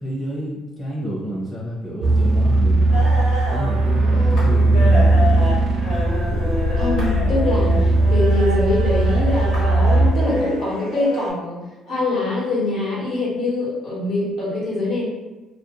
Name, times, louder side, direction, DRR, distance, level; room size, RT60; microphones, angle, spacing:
voice 1, 0.0-3.2 3.5-5.6, equal, 20° left, -6 dB, 0.7 m, -29 dB
sound 1, 2.0-10.1, right 2 dB, 50° right, 0.4 m, -18 dB
sound 2, 2.9-11.3, equal, 85° left, 1.3 m, -29 dB
voice 2, 6.8-11.6 11.9-15.1, left 2 dB, 70° left, -6 dB, 1.1 m, -24 dB
2.4 x 2.3 x 2.8 m, 1.1 s
cardioid pair, 125°, 0 cm